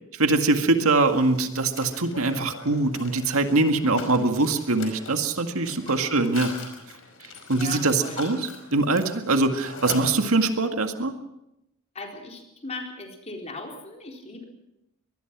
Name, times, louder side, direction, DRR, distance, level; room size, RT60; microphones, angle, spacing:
voice 1, 0.2-6.5 7.5-11.1, right 3 dB, 75° right, 6 dB, 1.9 m, -23 dB
Mechanisms, 0.9-10.7, left 4 dB, 65° left, 5.2 m, -41 dB
voice 2, 5.8-6.3 7.5-8.3 11.9-14.4, left 2 dB, 30° left, 2 dB, 4.0 m, -39 dB
23.5 x 20.0 x 6.1 m, 0.85 s
head